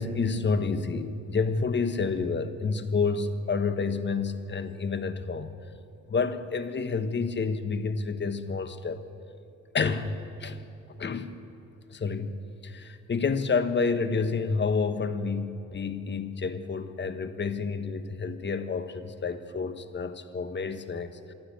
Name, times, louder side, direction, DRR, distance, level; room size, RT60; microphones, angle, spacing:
voice 1, 0.0-5.6 6.1-9.0 9.7-10.6 10.9-11.3 11.9-21.3, left 4 dB, 35° left, 10 dB, 1.4 m, -29 dB
24.5 x 13.0 x 8.2 m, 2.9 s
cardioid pair, 90°, 30 cm